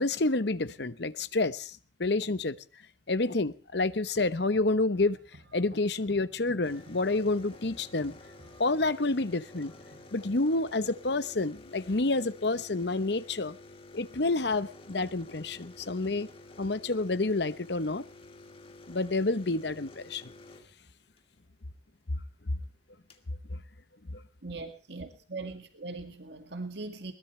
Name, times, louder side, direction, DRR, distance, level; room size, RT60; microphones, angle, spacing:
voice 1, 0.0-2.6 3.1-5.2 5.5-8.2 8.6-9.7 10.1-13.6 13.9-16.3 16.6-18.0 18.9-20.3 23.5-23.6 24.1-24.2, left 2 dB, 65° left, 1.0 m, -29 dB
sound 1, 4.0-10.1, right 1 dB, 85° right, 4.9 m, -56 dB
sound 2, 6.6-21.2 22.6-22.7 22.8-23.3, left 2 dB, 30° left, 2.2 m, -51 dB
voice 2, 24.4-27.1, right 3 dB, 70° right, 2.1 m, -40 dB
21.5 x 19.5 x 3.3 m
head